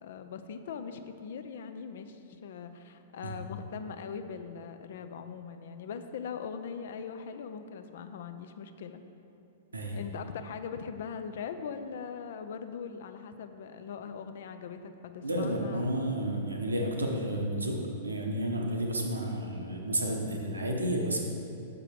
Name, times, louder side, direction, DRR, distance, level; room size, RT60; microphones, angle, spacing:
voice 1, 0.0-9.0 9.9-16.1, left 6 dB, 55° left, 9 dB, 0.4 m, -41 dB
voice 2, 15.2-21.2, right 1 dB, 80° right, 1 dB, 0.9 m, -31 dB
6.7 x 4.9 x 4.8 m, 2.8 s
figure-of-eight pair, 100°, 0 cm